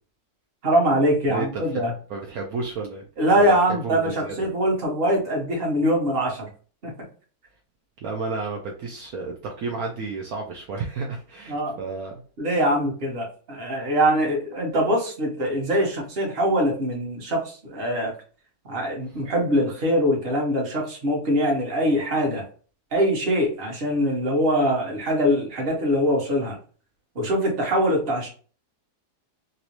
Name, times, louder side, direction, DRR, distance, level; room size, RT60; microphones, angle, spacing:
voice 1, 0.6-1.9 3.2-6.5 6.8-6.9 11.5-11.8 12.4-18.1 18.7-22.4 22.9-26.6 27.1-28.3, equal, 40° right, -1 dB, 1.2 m, -23 dB
voice 2, 1.3-1.8 2.1-3.0 3.4-4.3 8.0-12.1, right 4 dB, 70° right, 0 dB, 1.0 m, -32 dB
3.0 x 2.7 x 2.9 m, 0.40 s
omnidirectional pair, 1.7 m